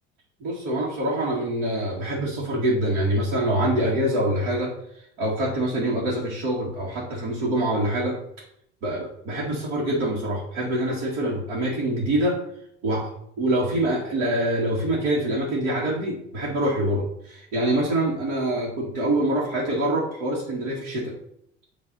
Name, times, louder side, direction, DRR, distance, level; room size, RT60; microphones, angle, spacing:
voice 1, 0.4-4.7 5.2-8.2 8.8-12.4 12.8-13.1 13.4-21.1, right 1 dB, 70° right, -5 dB, 2.0 m, -25 dB
9.6 x 3.2 x 4.2 m, 0.73 s
hypercardioid pair, 60°, 35 cm